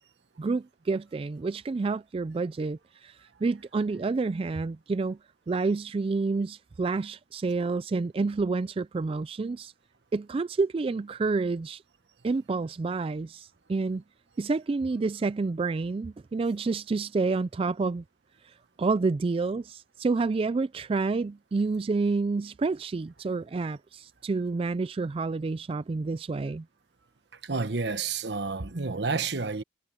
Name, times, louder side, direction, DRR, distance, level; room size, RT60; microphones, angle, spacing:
voice 1, 0.4-5.2 5.5-9.7 10.1-11.8 12.2-14.0 14.4-18.0 18.8-26.6, right 3 dB, 30° right, 0.3 m, -29 dB
voice 2, 27.4-29.6, right 4 dB, 75° right, 1.2 m, -30 dB
head